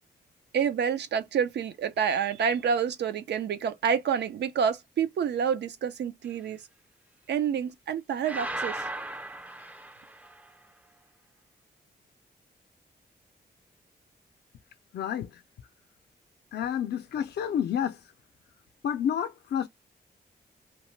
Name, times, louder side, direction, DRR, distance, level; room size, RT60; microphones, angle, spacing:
voice 1, 0.5-6.6 7.3-8.8, right 7 dB, 85° right, 0.5 m, -28 dB
sound 1, 8.2-10.5, right 2 dB, 10° right, 0.3 m, -36 dB
voice 2, 14.9-15.7 16.5-18.1 18.8-19.7, left 9 dB, 75° left, 0.4 m, -30 dB
2.9 x 2.1 x 3.1 m
wide cardioid pair, 125°, 17 cm